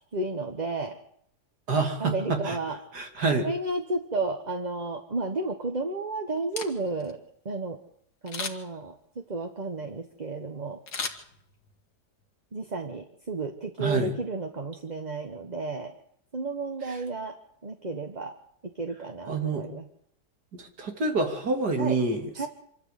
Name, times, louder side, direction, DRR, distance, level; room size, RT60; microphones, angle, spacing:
voice 1, 0.1-1.0 2.0-2.8 3.3-7.8 8.2-8.9 9.3-10.8 12.5-16.0 16.3-17.4 17.6-18.4 18.6-19.8 21.8-22.0 22.4-22.5, right 3 dB, 25° right, 5 dB, 1.5 m, -32 dB
voice 2, 1.7-2.6 2.9-3.5 13.8-14.1 16.9-17.0 19.3-19.7 20.5-22.5, right 3 dB, 75° right, 4 dB, 3.5 m, -27 dB
Camera, 6.4-7.1 8.3-8.8 10.9-11.8 12.2-12.3, left 5 dB, 75° left, 2.3 m, -36 dB
25.5 x 13.5 x 8.3 m, 0.68 s
omnidirectional pair, 1.8 m